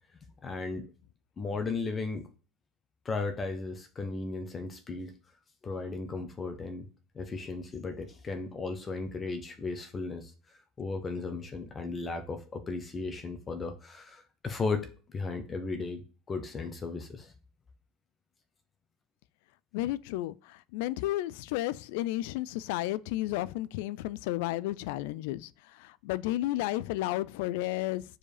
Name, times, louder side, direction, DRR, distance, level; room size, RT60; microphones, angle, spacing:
voice 1, 0.4-0.9 1.4-2.3 3.0-5.1 5.6-6.9 7.1-10.3 10.8-17.3, left 3 dB, 25° left, 1.0 m, -35 dB
voice 2, 19.7-28.0, left 16 dB, 85° left, 0.3 m, -32 dB
4.9 x 4.8 x 4.9 m
cardioid pair, 145°, 0 cm